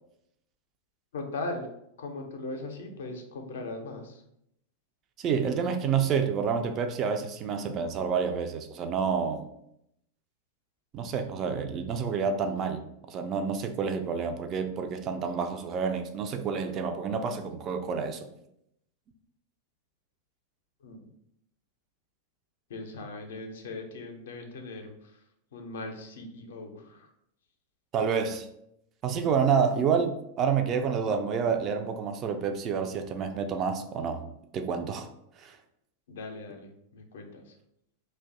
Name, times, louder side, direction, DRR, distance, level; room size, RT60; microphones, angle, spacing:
voice 1, 1.1-1.7 2.0-4.2 20.8-21.1 22.7-25.2 25.5-27.1 36.1-37.5, left 2 dB, 60° left, 4 dB, 0.5 m, -39 dB
voice 2, 5.2-9.5 10.9-12.8 13.1-18.3 27.9-28.5 29.0-34.2 34.5-35.1 35.4-35.6, right 6 dB, 30° right, 6 dB, 0.3 m, -28 dB
2.5 x 2.1 x 3.6 m, 0.78 s
figure-of-eight pair, 90°, 0 cm